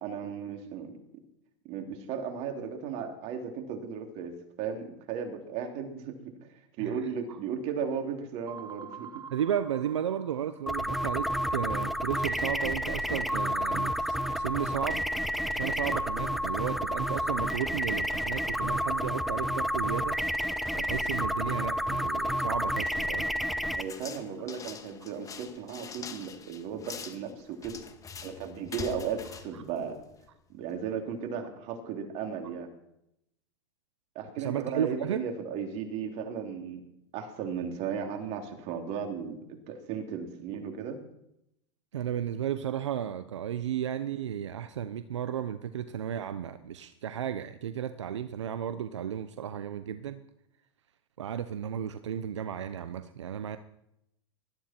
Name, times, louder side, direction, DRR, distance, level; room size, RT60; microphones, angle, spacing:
voice 1, 0.0-1.0 1.7-6.5 6.8-9.2 23.7-27.8 28.2-30.0 30.5-32.7 34.1-36.8 37.1-41.0, right 6 dB, 50° right, 3 dB, 3.2 m, -35 dB
sound 1, 8.5-11.1, right 8 dB, 25° right, 1.0 m, -46 dB
voice 2, 9.3-15.1 15.5-20.2 20.8-23.2 29.5-29.6 34.4-35.2 41.9-50.2 51.2-53.6, right 9 dB, 85° right, 11 dB, 0.8 m, -34 dB
sound 2, 10.7-23.8, equal, ahead, 1.0 m, -30 dB
sound 3, 23.8-30.4, left 5 dB, 25° left, 1.6 m, -44 dB
19.5 x 13.5 x 4.5 m, 0.82 s
hypercardioid pair, 110°, 15 cm